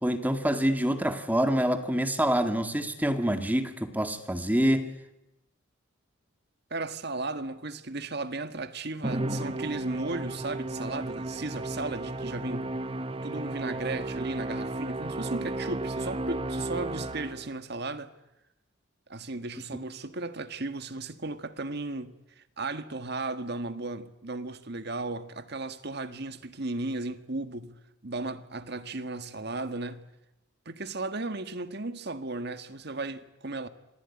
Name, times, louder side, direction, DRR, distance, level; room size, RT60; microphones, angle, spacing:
voice 1, 0.0-4.9, equal, 10° right, 2.2 m, -26 dB
voice 2, 6.7-12.7 13.2-18.1 19.1-30.0 30.6-33.7, right 2 dB, 55° right, 1.7 m, -35 dB
Musical instrument, 9.0-17.6, right 2 dB, 25° right, 1.0 m, -34 dB
27.0 x 19.5 x 9.9 m
head